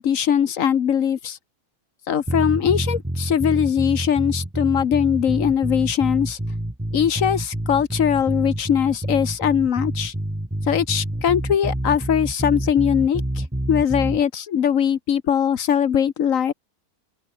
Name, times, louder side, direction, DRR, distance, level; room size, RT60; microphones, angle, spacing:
voice 1, 0.0-1.4 2.1-6.4 6.9-10.1 10.7-13.2 13.7-16.5, left 8 dB, 65° left, 1.3 m, -21 dB
sound 1, 2.3-14.2, right 1 dB, 5° right, 1.8 m, -27 dB
omnidirectional pair, 1.5 m